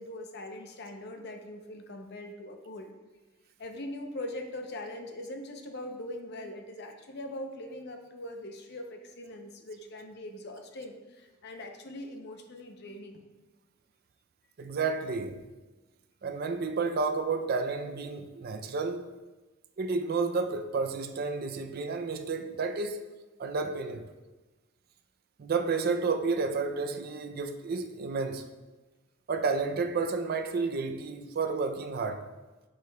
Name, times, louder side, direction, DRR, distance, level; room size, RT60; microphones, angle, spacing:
voice 1, 0.0-2.9 3.6-13.2, left 1 dB, 55° left, 0.6 m, -41 dB
voice 2, 14.6-15.4 16.2-19.1 19.8-23.1 23.4-24.1 25.4-28.5 29.3-32.3, right 4 dB, 50° right, 0.4 m, -31 dB
6.6 x 6.5 x 2.2 m
head